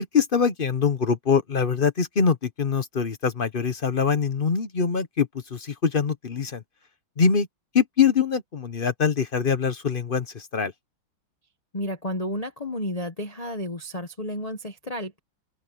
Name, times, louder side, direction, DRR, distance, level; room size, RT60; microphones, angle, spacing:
voice 1, 0.0-6.6 7.2-7.5 7.7-10.7, left 6 dB, 40° left, 0.8 m, -23 dB
voice 2, 11.7-15.2, equal, 25° left, 1.2 m, -32 dB
omnidirectional pair, 2.1 m